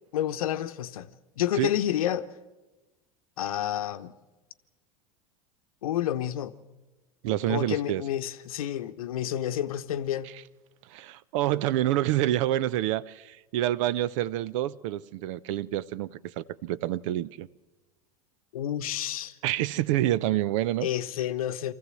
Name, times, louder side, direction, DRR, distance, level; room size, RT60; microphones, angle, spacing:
voice 1, 0.1-1.1 1.4-2.3 3.4-4.1 5.8-6.5 7.5-10.3 18.5-19.3 20.8-21.7, left 11 dB, 75° left, 0.9 m, -29 dB
voice 2, 7.2-8.0 10.9-17.5 19.4-20.9, right 13 dB, 60° right, 0.6 m, -27 dB
24.0 x 15.0 x 7.7 m
hypercardioid pair, 85°, 18 cm